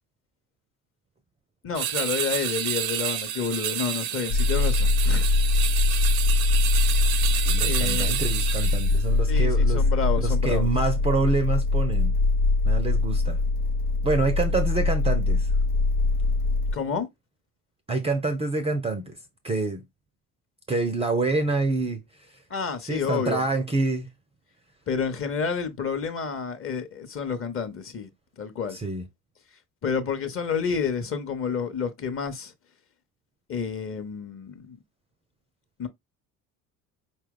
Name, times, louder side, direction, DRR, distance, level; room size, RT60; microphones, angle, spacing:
voice 1, 1.6-5.3 7.6-8.2 9.3-10.7 16.7-17.1 22.5-23.4 24.9-28.1 28.4-28.8 29.8-32.5 33.5-34.8 35.8-35.9, left 6 dB, 30° left, 0.8 m, -29 dB
sound 1, 1.7-9.1, right 10 dB, 70° right, 0.7 m, -29 dB
sound 2, 4.3-16.7, left 3 dB, 70° left, 0.8 m, -22 dB
voice 2, 7.5-9.8 10.2-12.1 12.6-13.4 14.0-15.5 17.9-19.2 19.4-19.8 20.7-22.0 22.9-24.1 28.7-29.1, right 3 dB, 15° right, 0.5 m, -27 dB
4.5 x 2.2 x 3.6 m
figure-of-eight pair, 60°, 43 cm